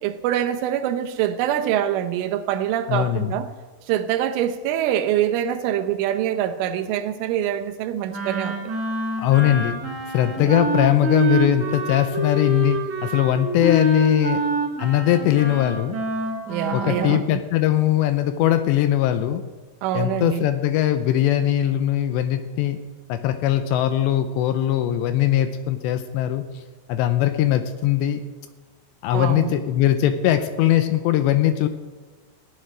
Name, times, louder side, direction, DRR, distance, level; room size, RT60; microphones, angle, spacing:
voice 1, 0.0-3.5 3.9-8.7 10.4-10.6 16.5-17.4 19.8-20.5 29.1-29.5, right 11 dB, 90° right, 3.4 m, -25 dB
voice 2, 2.9-3.4 9.2-9.7 10.1-14.4 14.8-16.0 16.7-19.4 19.9-22.8 23.1-26.5 26.9-28.2 29.0-31.7, left 12 dB, 80° left, 2.7 m, -20 dB
Wind instrument woodwind instrument, 8.1-17.1, right 1 dB, 45° right, 1.0 m, -26 dB
15.5 x 8.0 x 10.0 m
omnidirectional pair, 5.5 m